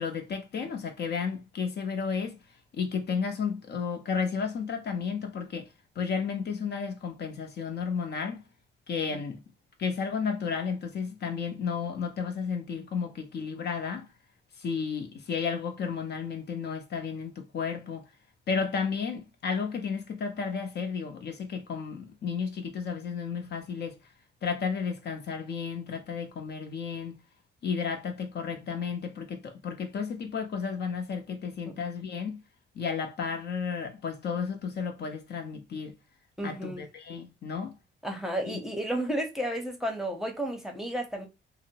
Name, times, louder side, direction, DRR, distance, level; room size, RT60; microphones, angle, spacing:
voice 1, 0.0-2.4 2.8-5.7 6.0-8.5 8.9-9.4 9.8-14.1 14.6-18.1 18.5-24.0 24.4-27.2 27.6-32.4 32.7-36.0 36.4-37.8 38.5-38.6, left 6 dB, 55° left, 0.7 m, -33 dB
voice 2, 36.4-36.9 38.0-41.3, right 1 dB, ahead, 0.8 m, -32 dB
2.7 x 2.0 x 2.8 m
cardioid pair, 90°, 20 cm